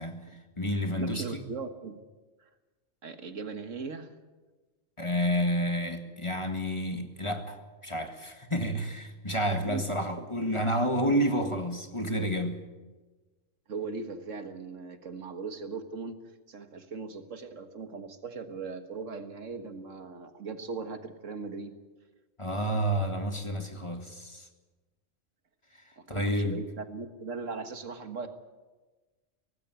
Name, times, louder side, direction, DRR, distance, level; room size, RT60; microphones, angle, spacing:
voice 1, 0.0-1.2 5.0-12.6 22.4-24.5 25.7-26.6, equal, 25° left, 5 dB, 1.8 m, -30 dB
voice 2, 0.6-2.0 2.4-2.5 3.0-4.1 9.6-10.3 13.7-21.7 26.0-28.3, right 4 dB, 85° right, 8 dB, 1.9 m, -39 dB
18.0 x 16.0 x 9.4 m, 1.2 s
omnidirectional pair, 1.3 m